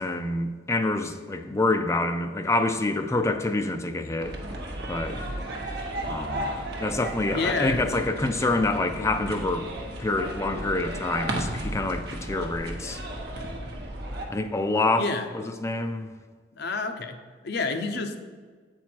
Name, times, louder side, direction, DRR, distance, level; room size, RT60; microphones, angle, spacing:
voice 1, 0.0-4.3 4.9-5.2 6.0-13.0 14.3-15.0 15.3-16.1, left 2 dB, 15° left, 6 dB, 0.4 m, -27 dB
sound 1, 4.2-14.3, right 1 dB, 60° right, 1.0 m, -34 dB
voice 2, 7.3-7.8 15.0-15.3 16.6-18.2, left 3 dB, 60° left, 6 dB, 0.6 m, -29 dB
8.2 x 4.5 x 4.5 m, 1.5 s
head